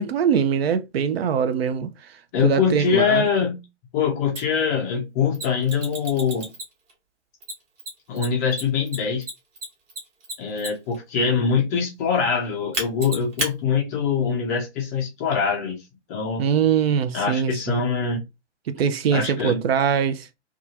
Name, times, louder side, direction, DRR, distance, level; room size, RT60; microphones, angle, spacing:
voice 1, 0.0-1.9 2.4-3.3 16.4-17.8 18.7-20.3, right 7 dB, 60° right, 0.5 m, -22 dB
voice 2, 2.3-3.6 3.9-6.5 8.1-9.2 10.4-15.8 16.1-16.4 17.1-18.2 19.1-19.6, left 6 dB, 15° left, 0.4 m, -23 dB
Mechanisms, 4.3-4.4 5.3-6.9 7.4-11.0 12.7-13.5, right 2 dB, 25° right, 1.1 m, -31 dB
2.6 x 2.3 x 2.7 m
figure-of-eight pair, 125°, 36 cm